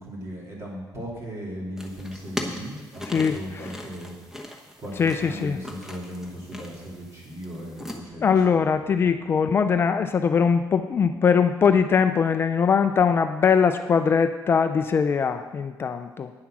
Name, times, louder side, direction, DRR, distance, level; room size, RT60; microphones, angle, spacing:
voice 1, 0.0-4.1 4.8-9.1, equal, 40° right, -3 dB, 2.9 m, -37 dB
sound 1, 1.8-8.0, left 1 dB, 5° right, 1.0 m, -39 dB
voice 2, 5.0-5.6 8.2-16.3, left 6 dB, 30° left, 8 dB, 0.4 m, -21 dB
9.7 x 7.6 x 6.1 m, 1.2 s
cardioid pair, 170°, 8 cm